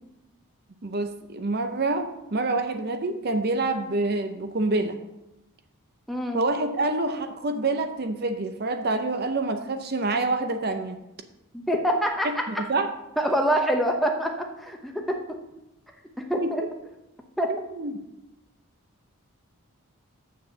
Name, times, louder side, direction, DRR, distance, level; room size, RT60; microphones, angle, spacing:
voice 1, 0.8-5.0 6.3-11.0 12.5-12.9 16.4-16.5 17.5-17.9, right 2 dB, 45° right, 7 dB, 0.6 m, -27 dB
voice 2, 6.1-6.4 11.5-12.6 13.2-15.2 16.2-16.6 17.4-17.5, equal, ahead, 1 dB, 0.9 m, -25 dB
7.0 x 6.5 x 6.7 m, 0.94 s
head